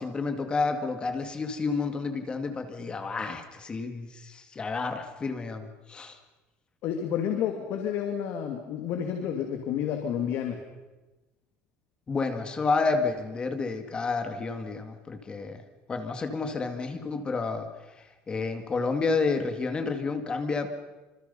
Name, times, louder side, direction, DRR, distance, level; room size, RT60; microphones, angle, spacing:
voice 1, 0.0-6.2 12.1-15.6 15.9-17.7 18.0-20.7, left 4 dB, 20° left, 7 dB, 2.2 m, -30 dB
voice 2, 6.8-10.6, left 9 dB, 55° left, 4 dB, 2.6 m, -30 dB
27.0 x 26.0 x 5.6 m, 1.1 s
cardioid pair, 165°, 5 cm